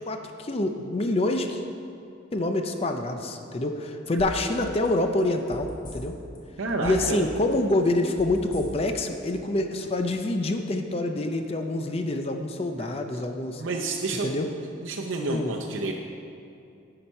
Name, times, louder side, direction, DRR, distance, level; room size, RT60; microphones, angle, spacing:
voice 1, 0.0-1.6 2.3-6.2 6.8-13.6 14.2-14.5 15.3-15.5, left 2 dB, 30° left, 5 dB, 0.5 m, -26 dB
sound 1, 4.2-4.5 4.8-6.4 6.7-7.2 7.5-9.0 9.3-9.4, equal, 50° left, 1.5 m, -39 dB
voice 2, 6.6-7.2 12.8-13.0 13.6-14.3 14.8-15.9, right 3 dB, 90° right, 1 dB, 0.7 m, -30 dB
9.9 x 5.8 x 5.3 m, 2.5 s
head